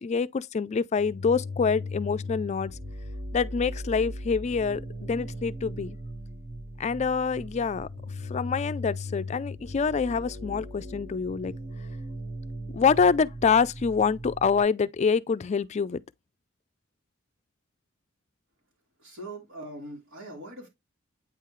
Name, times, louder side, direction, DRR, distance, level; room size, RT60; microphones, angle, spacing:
voice 1, 0.0-2.8 3.3-6.0 6.8-7.9 8.3-11.5 12.7-16.0, left 5 dB, 35° left, 0.3 m, -26 dB
sound 1, 0.9-14.6, left 1 dB, 60° right, 1.6 m, -38 dB
voice 2, 19.0-20.7, right 1 dB, 90° right, 3.0 m, -41 dB
8.9 x 3.7 x 3.1 m
head